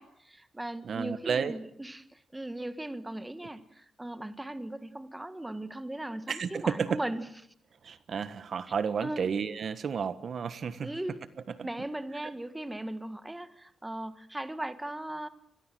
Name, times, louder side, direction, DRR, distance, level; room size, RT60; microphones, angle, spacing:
voice 1, 0.0-7.2 9.0-9.3 10.8-11.3 11.6-15.3, right 1 dB, 10° right, 12 dB, 1.5 m, -38 dB
voice 2, 0.8-1.5 6.3-7.0 7.8-10.9 11.5-11.6, right 6 dB, 50° right, 14 dB, 1.3 m, -31 dB
27.5 x 21.5 x 7.7 m, 0.69 s
wide cardioid pair, 135°, 0 cm